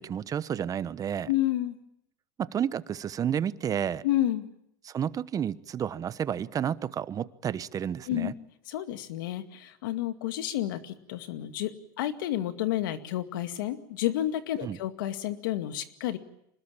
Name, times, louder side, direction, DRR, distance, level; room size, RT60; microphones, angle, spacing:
voice 1, 0.0-1.3 2.4-4.0 4.8-8.3 14.6-14.8, right 9 dB, 30° right, 16 dB, 1.1 m, -31 dB
voice 2, 1.3-1.8 4.0-4.5 8.1-8.3 8.7-11.7 12.0-16.2, left 13 dB, 80° left, 9 dB, 2.2 m, -30 dB
26.0 x 20.5 x 8.8 m, 0.76 s
supercardioid pair, 105°, 11 cm